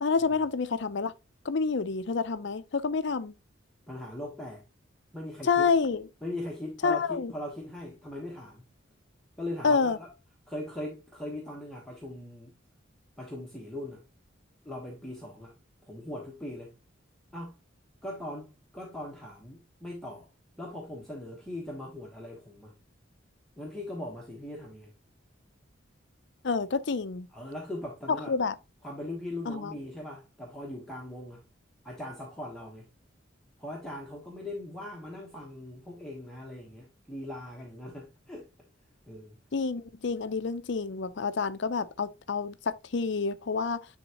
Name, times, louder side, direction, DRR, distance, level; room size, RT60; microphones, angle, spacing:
voice 1, 0.0-1.1 1.4-3.3 5.4-6.1 6.8-7.3 9.6-10.0 26.4-27.3 28.3-28.5 29.5-29.7 39.5-43.9, left 4 dB, 60° left, 0.5 m, -28 dB
voice 2, 3.9-4.7 5.1-5.7 6.2-8.6 9.4-10.1 10.5-12.5 13.2-14.0 14.6-15.5 15.9-16.7 17.3-17.6 18.0-20.3 20.6-22.7 23.6-24.9 27.3-28.4 28.8-31.5 31.8-32.9 33.6-38.5 39.1-39.4, left 1 dB, 5° left, 1.2 m, -40 dB
10.0 x 3.6 x 2.9 m
head